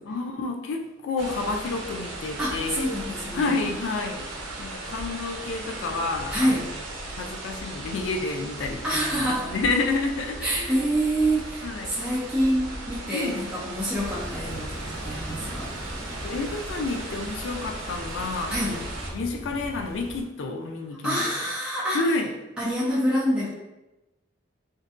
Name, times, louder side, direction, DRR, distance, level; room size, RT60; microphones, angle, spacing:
voice 1, 0.0-3.0 3.3-4.3 4.6-6.6 7.1-10.5 11.6-12.0 13.1-13.4 16.2-21.2 21.9-22.3, left 3 dB, 80° left, 4 dB, 0.3 m, -30 dB
sound 1, 1.2-19.1, right 2 dB, 80° right, 0.5 m, -37 dB
voice 2, 2.4-3.5 6.3-6.6 8.8-9.5 10.4-15.7 18.5-18.8 21.0-22.0 22.6-23.5, right 1 dB, 5° right, -9 dB, 0.5 m, -26 dB
sound 2, 13.9-20.2, equal, 35° left, 1.2 m, -39 dB
2.6 x 2.1 x 2.4 m, 0.99 s
head